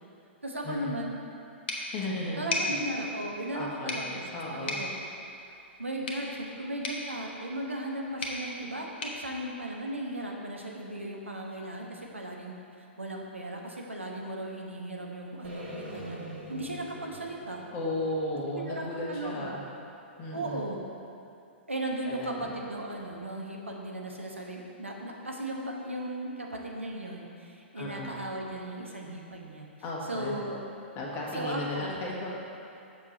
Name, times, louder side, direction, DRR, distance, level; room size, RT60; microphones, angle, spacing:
voice 1, 0.4-1.1 2.4-4.9 5.5-12.5 13.0-16.2 16.5-17.6 18.5-19.6 20.3-20.8 21.7-29.7 30.1-30.6 31.3-31.9, right 1 dB, 85° right, 0 dB, 1.1 m, -36 dB
sound 1, 1.7-10.4, left 2 dB, 60° left, 1.1 m, -38 dB
voice 2, 1.9-2.8 3.5-4.0 4.3-4.8 17.7-19.6 20.2-20.6 22.1-22.5 27.7-28.1 29.8-30.4 30.9-32.3, left 1 dB, 35° left, -3 dB, 1.6 m, -35 dB
sound 2, 15.4-19.5, equal, 55° right, 1.7 m, -45 dB
7.4 x 6.7 x 4.3 m, 2.7 s
figure-of-eight pair, 110°, 6 cm